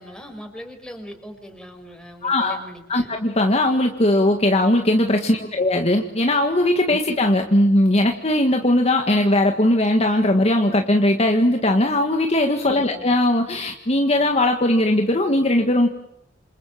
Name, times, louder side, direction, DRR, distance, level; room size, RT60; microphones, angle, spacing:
voice 1, 0.0-3.1 5.4-5.7 12.7-13.1, equal, 5° left, 5 dB, 5.4 m, -40 dB
voice 2, 2.2-2.6 2.9-15.9, left 1 dB, 35° left, 3 dB, 1.9 m, -19 dB
28.0 x 27.5 x 7.6 m, 0.80 s
head